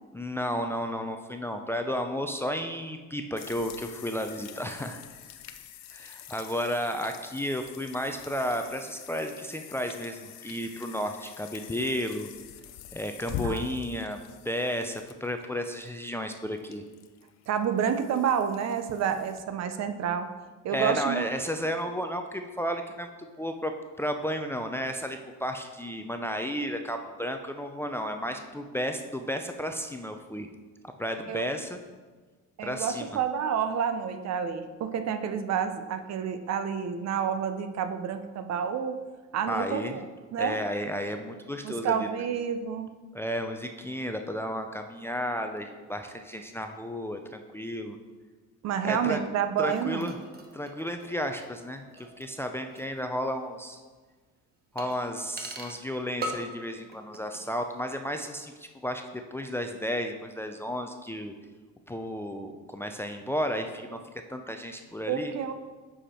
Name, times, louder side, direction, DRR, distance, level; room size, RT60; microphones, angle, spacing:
voice 1, 0.1-5.0 5.9-12.3 12.9-16.8 20.7-23.1 23.4-30.5 31.0-31.8 32.6-33.2 39.5-40.0 40.4-42.1 43.1-48.0 48.8-49.2 49.6-50.2 50.5-51.8 52.2-53.8 54.7-61.3 61.9-64.0 64.3-65.3, equal, 10° left, 5 dB, 0.4 m, -33 dB
sound 1, 3.4-19.4, left 9 dB, 60° left, 0.6 m, -44 dB
voice 2, 17.5-20.3 20.6-21.3 31.3-31.5 32.6-39.0 39.3-40.0 40.3-40.6 41.6-42.9 48.6-50.1 65.1-65.5, right 7 dB, 55° right, 9 dB, 0.7 m, -29 dB
sound 2, 49.6-53.0 53.2-53.3 54.8-55.9 56.2-56.6 56.9-57.5 57.7-57.8, right 2 dB, 30° right, 0.9 m, -42 dB
7.6 x 5.0 x 4.3 m, 1.4 s
cardioid pair, 110°, 32 cm